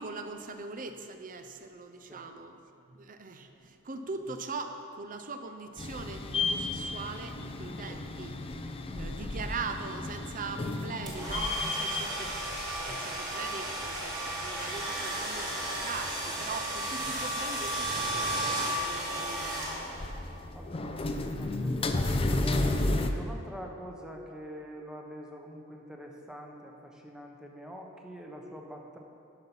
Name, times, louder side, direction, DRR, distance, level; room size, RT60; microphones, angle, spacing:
voice 1, 0.0-2.6 2.9-8.4 8.9-12.4 12.8-19.8 22.4-23.0, right 4 dB, 40° right, 7 dB, 0.6 m, -41 dB
sound 1, 5.8-23.1, left 2 dB, 25° left, 0.5 m, -34 dB
sound 2, 11.1-20.2, right 1 dB, 20° right, 2.1 m, -34 dB
voice 2, 20.5-29.0, equal, 5° right, 0 dB, 1.0 m, -45 dB
12.0 x 5.8 x 5.4 m, 2.4 s
head